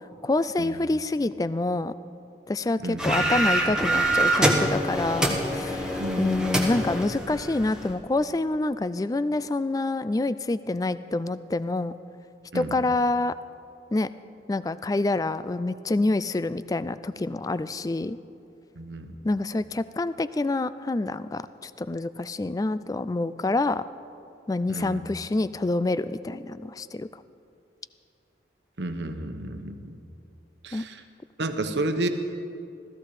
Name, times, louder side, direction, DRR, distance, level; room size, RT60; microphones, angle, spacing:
voice 1, 0.2-1.9 2.5-11.9 12.5-13.4 13.9-14.1 14.5-18.2 19.2-23.9 24.5-27.1 30.7-30.9, left 2 dB, 20° left, 14 dB, 0.3 m, -27 dB
sound 1, 3.0-7.9, right 1 dB, 5° right, 1.2 m, -25 dB
voice 2, 6.0-6.4 12.5-12.8 18.8-19.1 24.7-25.0 28.8-29.9 30.6-31.0 31.4-32.1, right 2 dB, 80° right, 7 dB, 1.0 m, -31 dB
16.0 x 14.0 x 4.9 m, 2.5 s
head